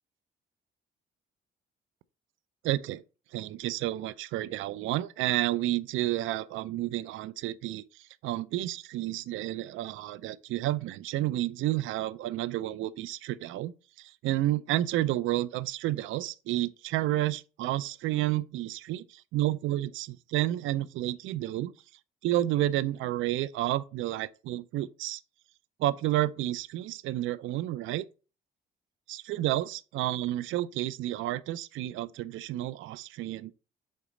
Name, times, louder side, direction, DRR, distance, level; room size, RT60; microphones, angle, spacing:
voice 1, 2.6-3.0 3.3-13.7 14.0-21.7 22.2-25.2 25.8-28.0 29.1-33.5, right 15 dB, 85° right, 0.4 m, -30 dB
5.3 x 3.9 x 4.9 m
cardioid pair, 90°, 20 cm